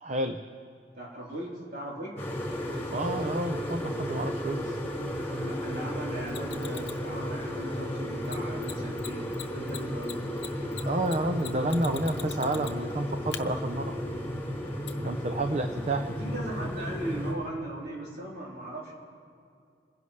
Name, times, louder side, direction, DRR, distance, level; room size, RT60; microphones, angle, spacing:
voice 1, 0.0-0.4 2.9-4.8 10.9-14.0 15.0-16.2, right 1 dB, 40° right, 6 dB, 0.6 m, -30 dB
voice 2, 0.9-2.2 5.3-10.2 12.1-12.2 16.2-18.9, right 1 dB, 55° right, -5 dB, 3.9 m, -38 dB
sound 1, 2.2-17.3, equal, 15° left, 4.3 m, -34 dB
Mechanisms, 6.3-7.0 8.2-8.4 8.6-8.7 9.0-9.1 9.3-12.9 13.3-13.4 14.9-15.0, left 11 dB, 75° left, 0.9 m, -40 dB
28.0 x 10.5 x 3.3 m, 2.4 s
head